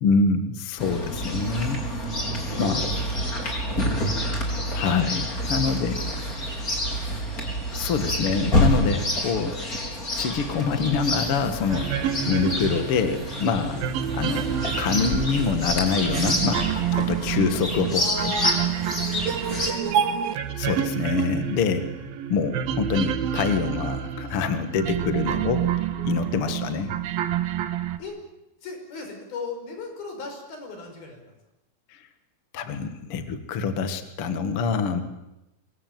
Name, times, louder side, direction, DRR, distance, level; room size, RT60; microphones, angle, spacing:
voice 1, 0.0-1.8 2.6-2.8 4.7-6.0 7.7-9.6 10.2-11.9 12.3-13.8 14.1-14.5 14.8-16.7 17.1-18.3 20.6-21.8 22.3-26.9 32.5-35.0, left 5 dB, 45° left, 8 dB, 2.3 m, -25 dB
Chirp tweet, 0.8-19.7, left 1 dB, 25° left, 4.7 m, -28 dB
voice 2, 2.4-2.9 5.5-5.9 6.2-6.3 6.8-6.9 12.2-12.4 16.8-17.0 17.9-20.1 21.6-22.0 26.0-26.4 28.0-28.1 28.6-31.3, left 2 dB, 80° left, 4 dB, 7.5 m, -38 dB
sound 1, 11.7-28.0, right 9 dB, 80° right, 3.3 m, -28 dB
25.0 x 22.0 x 9.2 m, 0.93 s
omnidirectional pair, 4.2 m